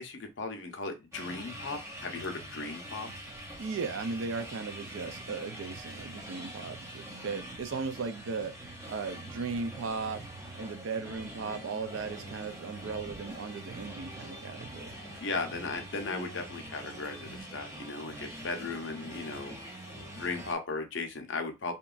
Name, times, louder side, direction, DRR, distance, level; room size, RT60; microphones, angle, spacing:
voice 1, 0.0-3.1 15.2-19.5 20.2-21.7, left 3 dB, 60° left, 0.6 m, -36 dB
sound 1, 1.1-20.5, right 1 dB, 15° right, 0.4 m, -44 dB
voice 2, 3.6-8.6 8.9-10.3 10.5-15.0, right 4 dB, 70° right, 0.4 m, -37 dB
2.9 x 2.2 x 2.4 m
head